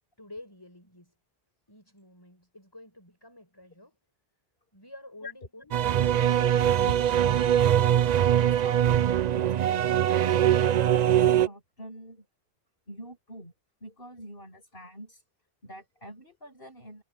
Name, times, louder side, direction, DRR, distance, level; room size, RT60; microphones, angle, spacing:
voice 1, 0.2-1.1 1.7-4.0 4.7-6.8, left 1 dB, 20° left, 5.5 m, -50 dB
sound 1, 5.7-11.5, right 10 dB, 55° right, 0.5 m, -22 dB
voice 2, 8.4-9.9 10.4-12.3 12.9-13.5 13.8-15.2 15.6-17.0, equal, 60° left, 8.2 m, -44 dB
omnidirectional pair, 1.1 m